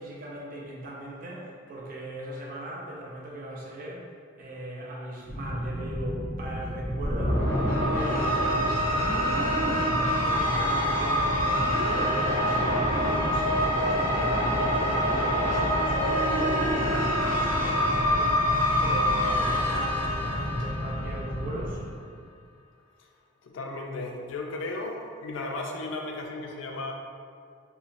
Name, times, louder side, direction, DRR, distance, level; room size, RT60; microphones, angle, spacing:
voice 1, 0.0-4.1 4.4-7.5 7.8-9.1 9.3-21.8, right 1 dB, 45° right, -4 dB, 0.4 m, -39 dB
sound 1, 5.2-21.8, equal, 15° right, 0.7 m, -34 dB
sound 2, 7.0-21.4, equal, 80° right, 0.9 m, -26 dB
voice 2, 23.4-26.9, left 2 dB, 70° left, 1 dB, 0.3 m, -35 dB
2.8 x 2.1 x 2.5 m, 2.2 s
head